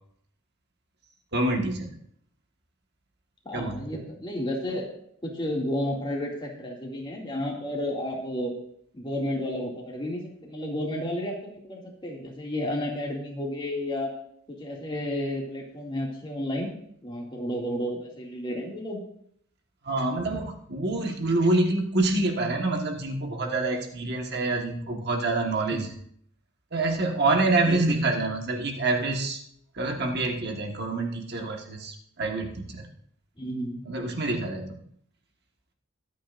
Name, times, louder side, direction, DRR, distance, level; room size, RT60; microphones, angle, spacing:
voice 1, 1.3-1.9 3.5-3.8 19.8-25.9 26.7-29.4 29.7-32.9 33.9-34.8, right 2 dB, 50° right, 2 dB, 1.5 m, -26 dB
voice 2, 3.4-4.9 5.2-8.5 8.9-14.1 14.5-16.7 17.0-19.0 25.7-25.9 27.6-28.1 33.4-33.8, left 1 dB, 25° left, -2 dB, 2.4 m, -32 dB
22.5 x 8.7 x 2.6 m, 0.68 s
head